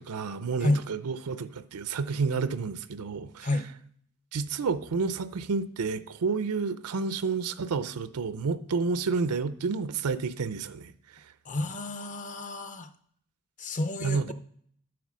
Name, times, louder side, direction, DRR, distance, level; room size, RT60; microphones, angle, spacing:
voice 1, 0.0-3.5 4.3-11.2 14.0-14.3, right 4 dB, 90° right, 0.5 m, -30 dB
voice 2, 11.4-12.9 13.6-14.3, left 2 dB, 35° left, 0.6 m, -30 dB
9.5 x 4.4 x 6.2 m
head